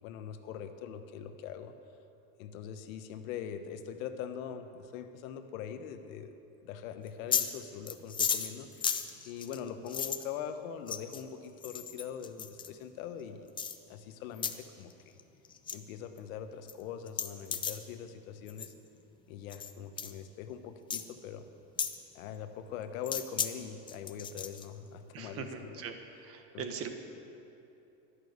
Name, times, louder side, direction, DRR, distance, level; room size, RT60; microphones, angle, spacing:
voice 1, 0.0-1.7 2.4-6.3 6.6-9.0 9.2-13.5 13.9-15.2 15.7-18.7 19.3-21.5 22.1-25.8 26.5-26.8, left 8 dB, 80° left, 8 dB, 1.2 m, -42 dB
sound 1, 7.1-7.5 7.9-10.3 10.9-11.2 11.6-12.7 13.6-13.8 14.4-14.5 14.9-15.2 15.4-15.8 16.2-16.3 16.7-16.8 17.1-17.8 18.5-18.7 19.5-19.7 20.0-20.1 20.9-21.0 21.8-22.0 23.0-23.5 23.9-24.6, left 7 dB, 15° left, 0.4 m, -34 dB
voice 2, 25.1-25.9 26.2-26.9, right 6 dB, 35° right, 6 dB, 1.3 m, -40 dB
12.0 x 11.0 x 8.1 m, 2.8 s
supercardioid pair, 145°, 40 cm